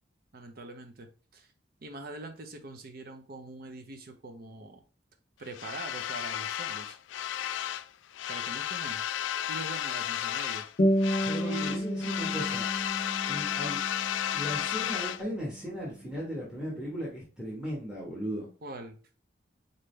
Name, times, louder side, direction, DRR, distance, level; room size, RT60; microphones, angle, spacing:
voice 1, 0.3-1.5 1.8-4.8 5.4-7.0 8.3-9.0 9.5-10.7 11.4-11.8 18.6-19.0, right 2 dB, 55° right, 5 dB, 0.7 m, -43 dB
sound 1, 5.5-7.9 8.1-10.7 11.0-15.2, left 11 dB, 80° left, 0.3 m, -33 dB
sound 2, 10.8-15.8, equal, 45° left, 0.7 m, -31 dB
voice 2, 11.3-12.7 13.3-13.8 14.3-18.5, equal, 5° right, -4 dB, 1.2 m, -37 dB
4.0 x 3.6 x 3.2 m, 0.36 s
head